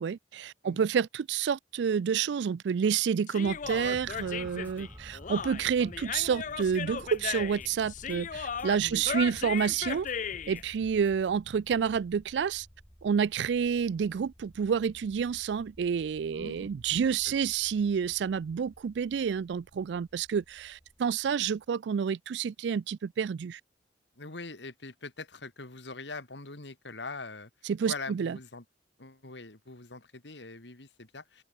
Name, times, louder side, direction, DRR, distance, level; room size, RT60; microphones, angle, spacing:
voice 1, 0.0-10.1 10.5-12.7 13.0-23.6 27.6-28.4, right 7 dB, 70° right, 0.3 m, -29 dB
Human voice, 3.3-10.6, left 7 dB, 45° left, 0.5 m, -36 dB
sound 1, 3.4-11.2, equal, 10° left, 1.8 m, -55 dB
sound 2, 3.6-21.7, equal, 20° right, 6.9 m, -54 dB
voice 2, 16.3-16.7 17.3-17.4 24.2-28.6 29.0-31.4, left 3 dB, 75° left, 2.8 m, -43 dB
open air
head